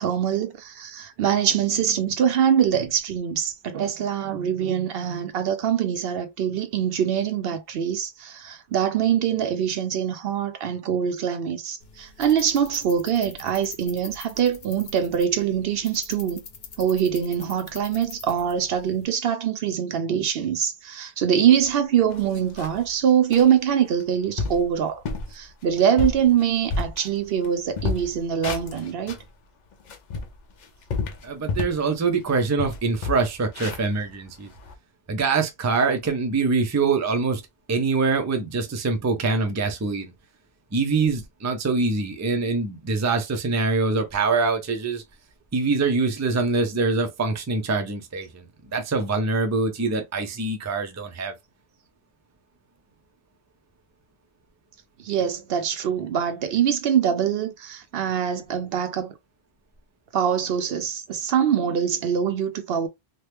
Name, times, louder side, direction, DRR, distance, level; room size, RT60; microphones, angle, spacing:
voice 1, 0.0-16.4 16.8-25.0 25.3-29.2 55.0-59.1 60.1-62.9, right 8 dB, 70° right, 0.7 m, -23 dB
sound 1, 11.8-19.0, left 5 dB, 75° left, 1.0 m, -44 dB
sound 2, 21.6-21.7 22.1-22.9 23.3-23.5 24.0-24.1 24.4-24.7 25.0-25.3 25.8-27.5 27.7-29.3 29.7-31.9 32.2-32.3 32.6-34.7, left 3 dB, 55° left, 0.6 m, -30 dB
voice 2, 31.2-34.5 35.1-37.4 37.7-40.1 40.7-45.0 45.5-48.4 48.7-51.3, right 4 dB, 25° right, 0.4 m, -24 dB
2.9 x 2.1 x 3.3 m
omnidirectional pair, 1.0 m